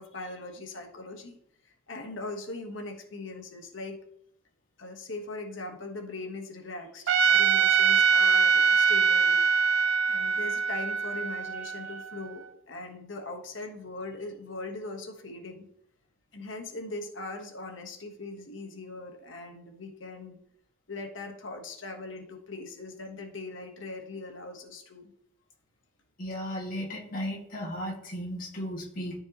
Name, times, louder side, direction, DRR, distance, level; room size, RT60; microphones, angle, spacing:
voice 1, 0.0-1.4 1.6-4.0 4.8-9.8 10.1-15.7 16.3-20.4 20.9-25.1, left 2 dB, 90° left, 4 dB, 1.3 m, -40 dB
Trumpet, 7.1-12.3, right 6 dB, 80° right, 0.4 m, -23 dB
voice 2, 26.2-29.1, equal, 45° left, -3 dB, 1.9 m, -35 dB
13.0 x 4.6 x 3.0 m, 0.71 s
head